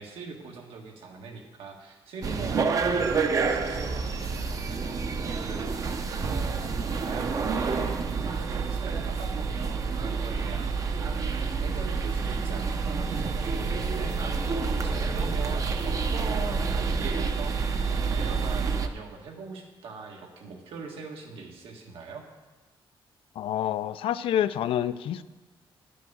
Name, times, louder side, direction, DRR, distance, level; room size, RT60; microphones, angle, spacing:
voice 1, 0.0-22.2, right 4 dB, 85° right, 1 dB, 1.8 m, -42 dB
sound 1, 2.2-18.9, right 4 dB, 40° right, 0.6 m, -28 dB
voice 2, 23.4-25.2, left 10 dB, 75° left, 14 dB, 0.4 m, -27 dB
10.5 x 6.2 x 7.1 m, 1.2 s
wide cardioid pair, 175°, 9 cm